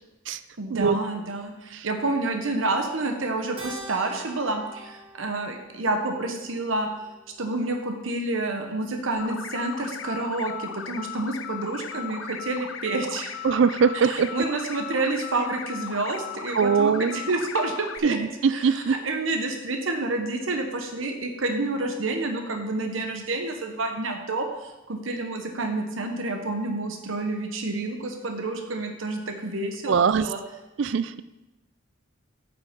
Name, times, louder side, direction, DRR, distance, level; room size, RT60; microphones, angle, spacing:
voice 1, 0.6-6.9 7.4-13.4 14.0-18.2 18.5-30.4, right 2 dB, 85° right, 4 dB, 1.0 m, -29 dB
Keyboard (musical), 3.6-8.2, right 2 dB, 25° right, 1.0 m, -46 dB
sound 1, 9.2-18.0, left 9 dB, 80° left, 0.5 m, -37 dB
voice 2, 13.4-14.3 16.5-17.2 18.0-19.0 29.9-30.3 30.8-31.2, right 6 dB, 70° right, 14 dB, 0.4 m, -22 dB
8.5 x 5.7 x 5.2 m, 1.0 s
head